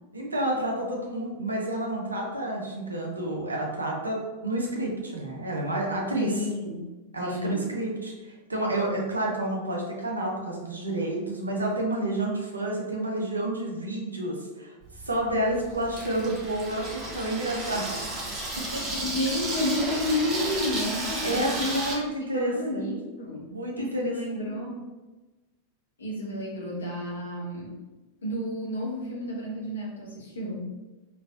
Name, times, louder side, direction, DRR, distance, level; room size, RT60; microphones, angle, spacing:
voice 1, 0.1-6.4 7.1-17.9 18.6-19.0 21.2-22.9 23.5-24.2, right 1 dB, 80° right, -1 dB, 0.6 m, -30 dB
voice 2, 6.1-6.8 7.2-7.7 19.0-21.8 22.3-24.8 26.0-27.8 28.2-30.6, left 1 dB, 70° left, -4 dB, 0.9 m, -31 dB
Water tap faucet / Sink (filling or washing), 14.8-22.0, right 2 dB, 30° right, 0.8 m, -33 dB
3.1 x 2.5 x 2.4 m, 1.2 s
figure-of-eight pair, 90°, 0 cm